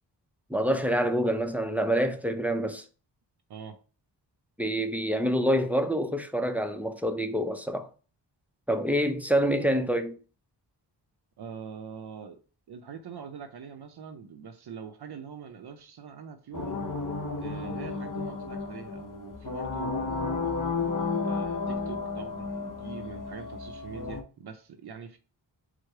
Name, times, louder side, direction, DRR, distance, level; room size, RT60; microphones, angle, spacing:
voice 1, 0.5-2.9 4.6-7.9 8.7-10.2, equal, 5° right, 0.4 m, -26 dB
voice 2, 11.4-12.4 12.7-16.8 17.4-20.6 21.2-25.2, right 6 dB, 60° right, 0.6 m, -43 dB
sound 1, 16.5-24.2, left 4 dB, 45° left, 0.9 m, -32 dB
4.8 x 2.0 x 4.5 m
cardioid pair, 70°, 44 cm